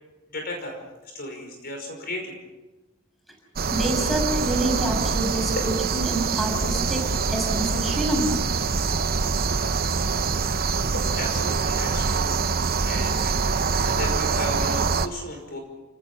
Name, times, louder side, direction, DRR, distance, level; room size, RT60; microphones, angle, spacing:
voice 1, 0.3-0.8 1.0-2.4 5.3-5.5 10.9-15.6, left 1 dB, 45° left, 3 dB, 5.4 m, -35 dB
sound 1, 3.6-15.1, right 4 dB, 45° right, 0.8 m, -24 dB
voice 2, 3.7-7.0 7.3-8.4, right 1 dB, ahead, 0 dB, 6.2 m, -27 dB
29.5 x 18.5 x 5.6 m, 1.1 s
head